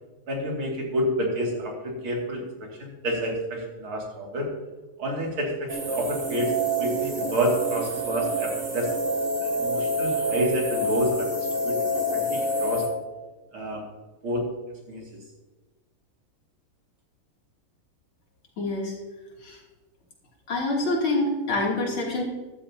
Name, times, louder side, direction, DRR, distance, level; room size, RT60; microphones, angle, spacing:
voice 1, 0.3-4.5 5.0-6.5 6.8-8.9 9.4-11.8 12.1-12.8 13.5-13.8 14.2-14.4 14.9-15.0, equal, 70° right, -1 dB, 3.3 m, -29 dB
sound 1, 5.7-12.9, equal, 85° right, 3.9 m, -27 dB
voice 2, 18.6-19.0 19.4-19.6 20.5-22.2, left 2 dB, 65° left, -3 dB, 3.7 m, -26 dB
14.5 x 12.5 x 2.8 m, 1.3 s
omnidirectional pair, 2.4 m